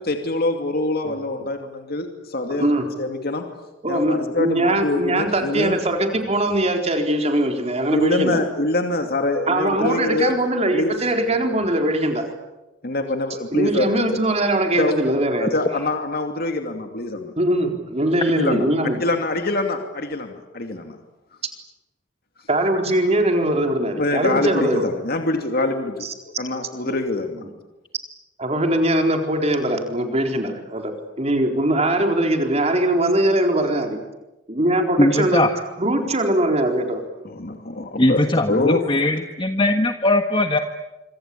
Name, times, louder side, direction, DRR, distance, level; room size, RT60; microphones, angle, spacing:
voice 1, 0.1-2.7 3.0-3.4 3.9-5.8 7.9-10.3 10.7-10.9 12.8-14.1 14.8-15.0 15.4-17.3 18.3-18.7 19.0-21.0 24.0-26.1 26.4-27.5 36.0-36.1 37.2-38.8, left 2 dB, 55° left, 5 dB, 2.7 m, -24 dB
voice 2, 2.5-2.8 3.8-8.4 9.5-12.3 13.5-15.6 17.4-19.0 22.5-24.9 26.9-27.0 28.4-34.0 34.5-35.4 35.8-37.0, right 1 dB, 35° right, 4 dB, 4.2 m, -21 dB
voice 3, 35.0-35.5 38.0-40.6, left 1 dB, 25° left, 6 dB, 1.4 m, -19 dB
26.5 x 25.5 x 8.6 m, 1.0 s
head